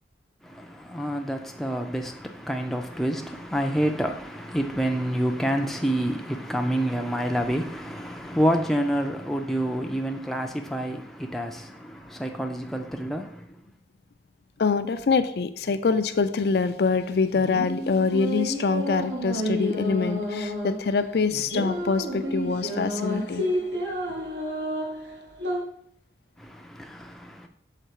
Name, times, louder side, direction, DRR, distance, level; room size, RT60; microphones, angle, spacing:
voice 1, 0.4-13.6 26.4-27.5, equal, ahead, 0.4 m, -28 dB
voice 2, 14.6-23.5, left 4 dB, 65° left, 0.4 m, -25 dB
sound 1, 17.1-25.6, equal, 80° right, 1.7 m, -30 dB
6.7 x 3.9 x 4.6 m
head